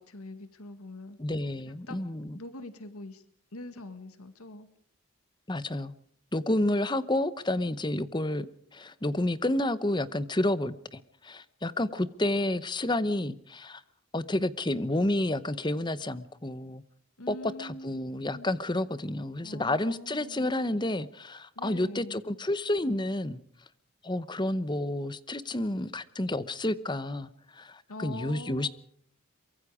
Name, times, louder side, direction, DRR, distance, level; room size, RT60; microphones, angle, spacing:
voice 1, 0.0-1.2 1.9-2.0 2.3-3.2 3.5-4.7 17.2-18.5 19.4-20.5 21.6-22.2 27.9-28.7, left 1 dB, 85° left, 10 dB, 2.0 m, -43 dB
voice 2, 1.2-2.4 5.5-5.9 6.3-8.5 8.7-13.8 14.1-16.8 17.3-23.4 24.0-28.7, left 1 dB, 20° left, 15 dB, 0.8 m, -30 dB
24.0 x 23.0 x 5.0 m, 0.65 s
head